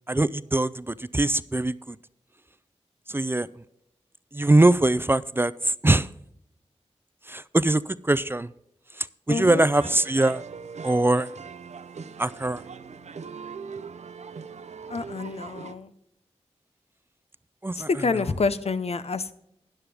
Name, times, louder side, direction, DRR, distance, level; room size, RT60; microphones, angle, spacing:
voice 1, 0.1-2.0 3.1-3.5 4.3-6.1 7.3-8.5 9.3-10.4 10.8-11.3 12.2-12.6 17.6-17.9, right 2 dB, 20° right, 0.4 m, -22 dB
voice 2, 9.3-9.7 14.9-15.9 17.7-19.3, left 4 dB, 65° left, 0.7 m, -27 dB
sound 1, 9.8-15.7, right 5 dB, 80° right, 0.7 m, -40 dB
12.5 x 10.5 x 3.5 m
wide cardioid pair, 75°, 11 cm